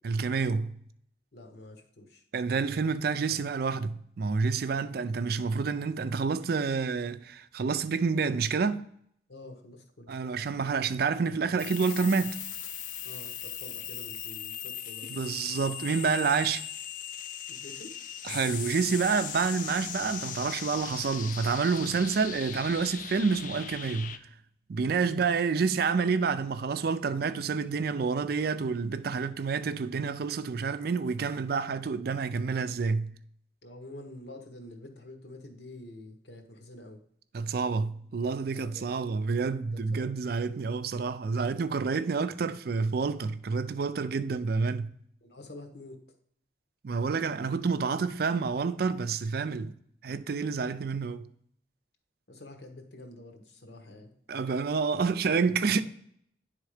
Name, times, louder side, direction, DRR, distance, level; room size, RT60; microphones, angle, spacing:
voice 1, 0.0-0.8 2.3-8.9 10.1-12.4 15.1-16.6 18.2-24.2 24.7-33.1 37.3-44.9 46.8-49.7 50.0-51.3 54.3-55.8, right 5 dB, 60° right, 0.4 m, -28 dB
voice 2, 1.3-2.2 9.3-10.1 13.0-15.2 17.5-17.9 25.0-25.3 33.6-37.0 38.5-38.9 39.9-40.1 45.2-46.0 48.0-48.1 52.3-54.1 55.7-55.8, left 1 dB, 70° left, 1.2 m, -47 dB
sound 1, 11.6-24.2, left 9 dB, 50° left, 0.4 m, -39 dB
9.4 x 3.6 x 4.9 m
head